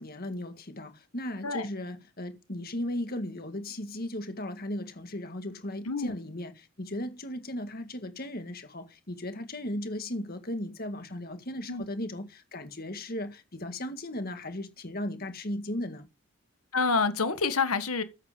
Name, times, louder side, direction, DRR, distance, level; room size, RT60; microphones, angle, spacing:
voice 1, 0.0-16.1, left 1 dB, 45° left, 1.9 m, -36 dB
voice 2, 5.8-6.1 11.7-11.8 16.7-18.0, left 4 dB, 80° left, 1.6 m, -27 dB
12.5 x 8.3 x 5.1 m
head